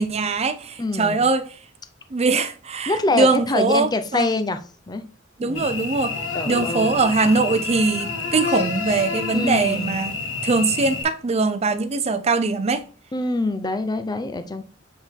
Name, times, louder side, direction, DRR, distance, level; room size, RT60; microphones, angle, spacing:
voice 1, 0.0-1.5 2.1-4.3 5.4-6.2 6.5-10.1 10.4-12.8, right 3 dB, 35° right, 0.5 m, -21 dB
voice 2, 0.8-1.3 2.9-5.1 5.4-5.6 6.3-7.0 9.3-10.0 13.1-14.6, left 2 dB, 20° left, 0.5 m, -25 dB
Cricket / Buzz, 5.5-11.0, left 4 dB, 75° left, 1.7 m, -28 dB
7.7 x 3.7 x 4.4 m
head